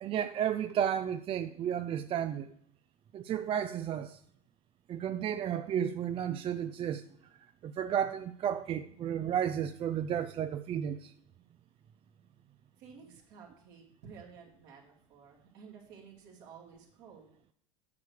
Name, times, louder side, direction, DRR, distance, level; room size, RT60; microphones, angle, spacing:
voice 1, 0.0-2.5 3.1-4.2 4.9-11.1, right 9 dB, 35° right, 0.4 m, -33 dB
voice 2, 12.8-17.3, right 6 dB, 65° right, 2.8 m, -53 dB
8.4 x 6.6 x 4.7 m
hypercardioid pair, 80°, 16 cm